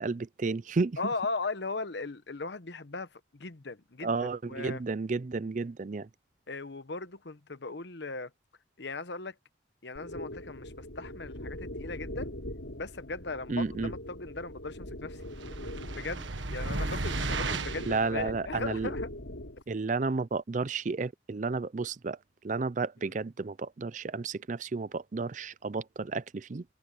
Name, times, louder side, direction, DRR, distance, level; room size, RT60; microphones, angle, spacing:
voice 1, 0.0-1.0 4.0-6.1 13.5-13.9 17.9-18.9 19.7-22.2 22.4-26.6, right 4 dB, 40° right, 0.5 m, -32 dB
voice 2, 1.0-4.1 4.4-4.8 6.5-8.3 8.8-9.4 9.8-12.3 12.7-15.2 15.9-19.1 23.0-23.1, left 3 dB, 65° left, 1.0 m, -38 dB
sound 1, 10.0-19.6, left 1 dB, 90° left, 4.3 m, -42 dB
sound 2, 15.4-18.0, right 3 dB, 85° right, 1.7 m, -34 dB
head